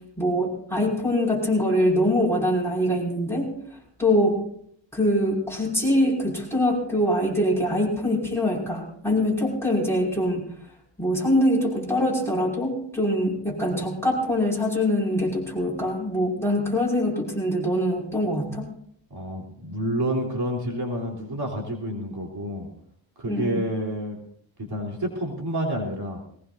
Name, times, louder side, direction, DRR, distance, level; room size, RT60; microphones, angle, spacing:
voice 1, 0.2-3.5 4.0-4.4 4.9-10.5 11.0-18.7 23.3-23.6, left 1 dB, 5° left, -3 dB, 5.5 m, -23 dB
voice 2, 19.1-22.7 23.2-24.2 24.6-26.2, equal, 55° right, -1 dB, 3.5 m, -29 dB
20.5 x 18.5 x 2.6 m, 0.66 s
wide cardioid pair, 90°, 45 cm